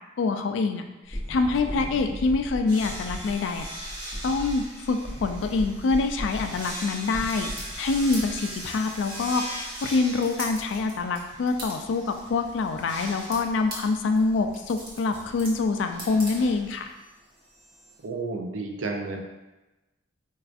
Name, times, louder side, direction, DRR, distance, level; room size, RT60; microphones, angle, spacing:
voice 1, 0.2-0.8 1.1-3.7 4.2-16.8, left 3 dB, 65° left, 6 dB, 0.3 m, -26 dB
sound 1, 1.1-8.6, equal, 10° left, 0.6 m, -37 dB
sound 2, 2.7-18.0, right 1 dB, 25° right, 0.9 m, -41 dB
sound 3, 6.9-16.8, right 1 dB, 50° right, 1.1 m, -44 dB
voice 2, 18.0-19.2, right 3 dB, 75° right, 2 dB, 0.5 m, -31 dB
4.4 x 2.4 x 2.4 m, 1.1 s
head